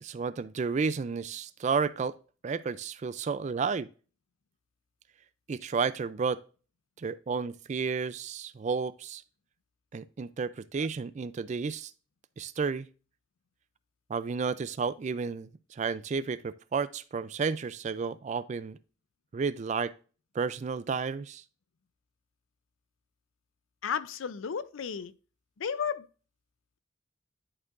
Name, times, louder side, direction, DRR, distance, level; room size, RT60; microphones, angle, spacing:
voice 1, 0.0-2.2 2.4-3.9 5.5-6.4 7.0-9.2 9.9-11.9 12.4-12.9 14.1-18.8 19.3-19.9 20.3-21.4, right 5 dB, 35° right, 0.3 m, -32 dB
voice 2, 23.8-25.1 25.6-26.1, left 7 dB, 80° left, 0.5 m, -33 dB
11.0 x 4.6 x 2.5 m
head